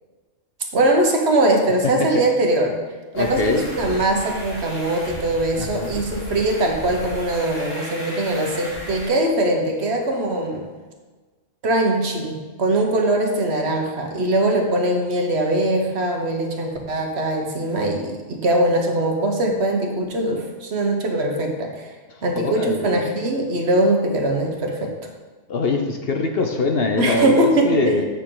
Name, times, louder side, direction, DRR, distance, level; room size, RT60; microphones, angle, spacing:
voice 1, 0.7-2.8 3.1-10.7 11.6-21.9 22.2-24.9 27.0-27.9, right 1 dB, 60° right, 2 dB, 1.3 m, -21 dB
voice 2, 1.8-2.2 3.1-3.7 5.6-5.9 22.4-23.1 25.5-28.0, left 3 dB, 55° left, 4 dB, 0.8 m, -23 dB
sound 1, 3.1-9.1, equal, 80° left, 2.5 m, -35 dB
8.3 x 6.7 x 3.8 m, 1.3 s
omnidirectional pair, 1.3 m